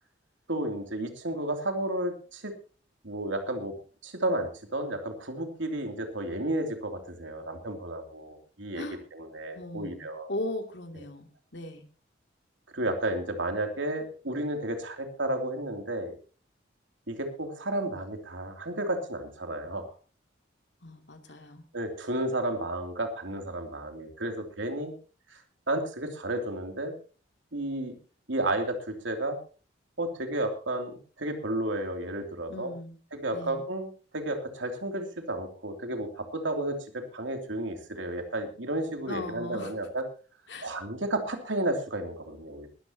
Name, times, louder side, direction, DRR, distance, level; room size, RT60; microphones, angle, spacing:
voice 1, 0.5-2.5 3.0-3.8 4.0-8.8 9.1-10.3 12.7-16.2 17.1-19.9 21.7-24.9 25.3-25.4 25.7-26.9 27.5-28.0 28.3-29.4 30.0-32.7 33.1-36.8 37.1-40.0 40.6-42.7, right 1 dB, 80° right, 5 dB, 2.9 m, -32 dB
voice 2, 9.5-11.9 20.8-21.7 32.5-33.0 33.3-33.6 39.1-39.7 40.5-40.7, left 1 dB, 65° left, 5 dB, 2.7 m, -38 dB
20.0 x 13.5 x 2.9 m, 0.37 s
head